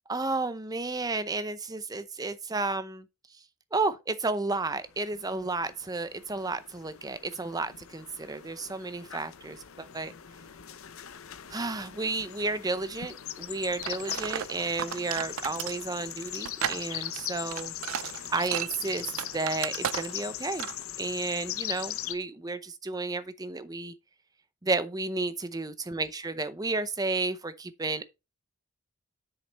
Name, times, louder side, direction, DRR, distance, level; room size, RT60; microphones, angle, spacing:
voice 1, 0.1-3.1 3.3-3.4 3.7-10.1 11.5-17.7 18.3-20.7 21.0-23.9 24.6-28.1, right 3 dB, 15° right, 0.6 m, -32 dB
sound 1, 4.7-22.1, left 12 dB, 70° left, 0.7 m, -40 dB
sound 2, 13.8-20.3 20.6-20.8, right 10 dB, 70° right, 0.4 m, -35 dB
8.0 x 6.4 x 3.4 m
head